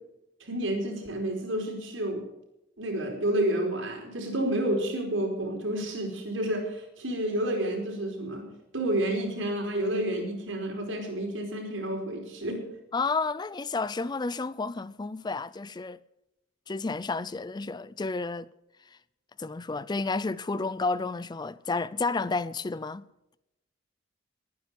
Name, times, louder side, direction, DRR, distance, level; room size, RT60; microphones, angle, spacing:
voice 1, 0.4-2.2 2.8-8.4 8.7-12.6, right 1 dB, 85° right, 4.7 m, -30 dB
voice 2, 12.9-16.0 16.7-18.5 19.4-23.0, left 3 dB, 20° left, 0.4 m, -31 dB
20.5 x 9.6 x 5.3 m
head